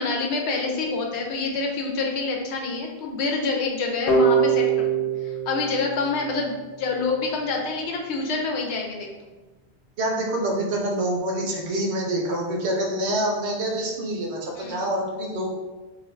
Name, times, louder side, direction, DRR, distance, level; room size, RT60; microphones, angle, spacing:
voice 1, 0.0-9.1 14.5-14.9, left 3 dB, 80° left, 1 dB, 0.8 m, -27 dB
sound 1, 4.1-6.9, right 5 dB, 55° left, 0.5 m, -23 dB
voice 2, 10.0-15.5, right 1 dB, 75° right, 0 dB, 0.9 m, -26 dB
2.5 x 2.5 x 3.1 m, 1.2 s
omnidirectional pair, 1.1 m